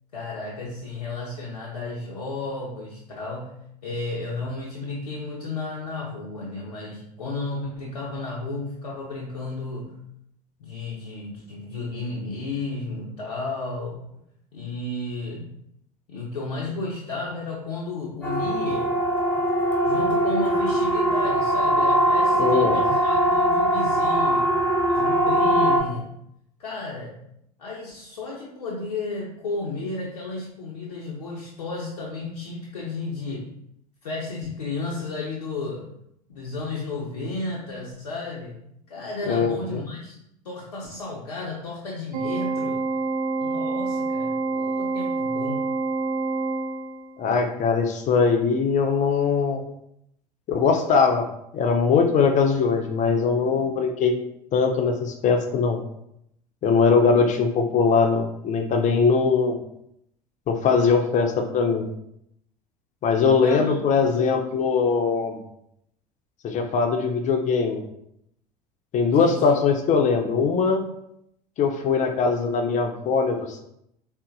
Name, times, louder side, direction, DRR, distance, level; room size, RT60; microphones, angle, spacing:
voice 1, 0.1-10.1 10.6-14.2 14.5-15.6 16.1-18.9 19.8-24.5 24.9-26.2 26.6-27.2 27.6-33.6 34.0-36.0 36.3-38.6 38.9-40.1 40.4-42.8 43.4-45.7 63.4-64.0 69.1-69.5, left 3 dB, 90° left, -3 dB, 0.5 m, -33 dB
Siren, 18.2-25.8, right 1 dB, 10° left, 0.9 m, -21 dB
voice 2, 22.3-22.8 39.3-39.6 47.2-49.6 50.5-51.2 51.5-54.1 54.5-55.8 56.6-59.6 60.5-61.9 63.0-65.4 66.4-67.8 68.9-70.8 71.6-73.6, left 5 dB, 40° left, 4 dB, 0.5 m, -21 dB
Organ, 42.1-47.2, right 3 dB, 70° right, 0.5 m, -27 dB
3.8 x 2.0 x 2.6 m, 0.75 s
hypercardioid pair, 75°, 19 cm